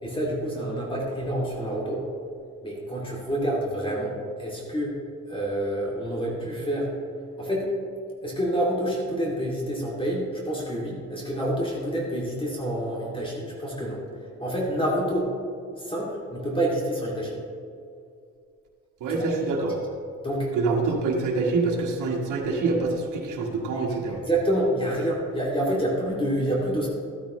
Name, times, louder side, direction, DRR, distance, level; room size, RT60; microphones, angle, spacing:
voice 1, 0.0-2.0 2.6-5.0 5.3-6.9 7.4-7.7 8.2-14.0 14.4-15.3 15.8-17.4 19.1-19.3 20.2-20.5 23.9-26.9, right 1 dB, 15° left, -4 dB, 2.5 m, -28 dB
voice 2, 19.0-19.8 20.5-24.2, right 3 dB, 80° right, -1 dB, 1.5 m, -26 dB
13.5 x 8.7 x 3.1 m, 2.4 s
cardioid pair, 90°, 30 cm